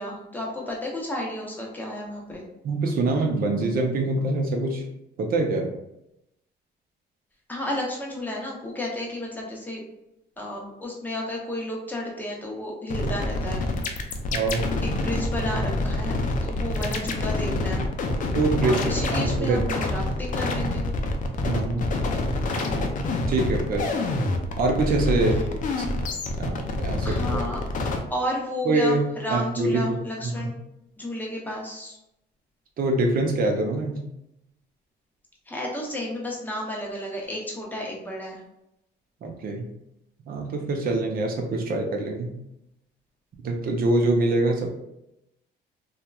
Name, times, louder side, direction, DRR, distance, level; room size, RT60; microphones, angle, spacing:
voice 1, 0.0-2.5 7.5-9.8 10.4-13.6 14.8-16.2 16.4-17.8 18.6-20.8 25.1-25.5 27.0-27.6 28.1-30.5 31.0-32.0 35.5-38.4, left 1 dB, 10° left, -2 dB, 0.7 m, -32 dB
voice 2, 2.6-4.8 5.2-5.7 14.3-14.6 18.3-19.7 21.4-21.9 23.3-23.9 24.6-25.4 25.8-25.9 26.4-27.4 28.6-29.9 30.2-30.5 32.8-34.0 39.2-39.6 40.3-42.3 43.4-44.7, right 2 dB, 55° right, 2 dB, 0.6 m, -24 dB
sound 1, 12.9-28.0, left 2 dB, 45° left, 0.4 m, -27 dB
2.9 x 2.3 x 2.3 m, 0.85 s
cardioid pair, 115°, 18 cm